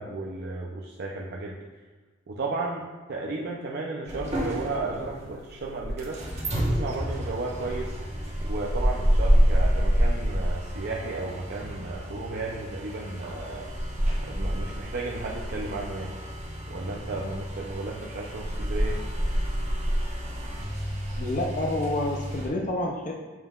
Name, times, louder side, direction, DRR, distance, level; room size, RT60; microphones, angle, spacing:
voice 1, 0.0-1.6 2.3-6.2 6.6-8.0 8.4-13.7 14.2-16.1 16.7-19.0, right 3 dB, 55° right, -2 dB, 0.5 m, -34 dB
sound 1, 4.1-22.5, equal, 35° right, 1.1 m, -28 dB
voice 2, 21.2-23.1, left 1 dB, 40° left, 0 dB, 0.5 m, -28 dB
7.5 x 5.3 x 2.4 m, 1.3 s
head